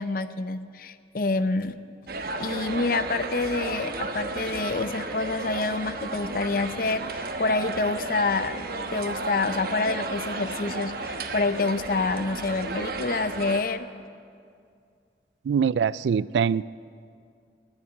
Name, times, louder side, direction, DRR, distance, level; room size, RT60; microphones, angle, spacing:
voice 1, 0.0-1.8 2.4-8.7 8.9-13.9, left 3 dB, 50° left, 13 dB, 0.6 m, -27 dB
sound 1, 2.1-13.6, right 3 dB, 55° right, 1.1 m, -33 dB
voice 2, 15.5-16.6, right 7 dB, 75° right, 20 dB, 0.3 m, -23 dB
18.0 x 7.3 x 10.0 m, 2.3 s
head